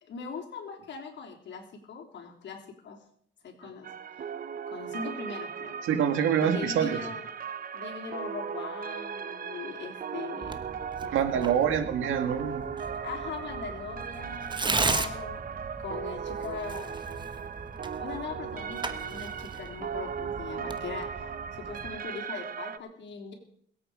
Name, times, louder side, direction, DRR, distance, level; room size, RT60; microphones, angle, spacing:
voice 1, 0.0-3.0 3.4-4.2 4.7-5.8 6.4-7.2 7.7-10.7 11.0-11.8 13.0-17.1 18.0-23.3, left 5 dB, 65° left, 2 dB, 3.5 m, -41 dB
sound 1, 3.8-22.8, right 7 dB, 45° right, 0.8 m, -37 dB
voice 2, 5.8-7.0 11.1-12.7, right 8 dB, 85° right, 7 dB, 1.9 m, -26 dB
Tearing, 10.4-22.0, right 3 dB, 25° right, 1.1 m, -37 dB
22.0 x 8.6 x 4.9 m, 0.65 s
cardioid pair, 90°, 20 cm